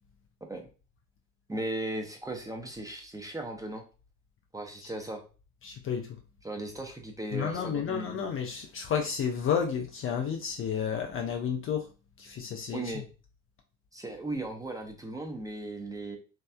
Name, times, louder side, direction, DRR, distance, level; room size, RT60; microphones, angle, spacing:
voice 1, 1.5-3.8 4.5-5.2 6.4-8.2 12.7-13.0 13.9-16.2, right 2 dB, 10° right, 0.7 m, -37 dB
voice 2, 5.6-6.2 7.3-11.9 12.2-13.0, left 7 dB, 35° left, 0.5 m, -31 dB
3.1 x 2.8 x 2.2 m
figure-of-eight pair, 60°, 40 cm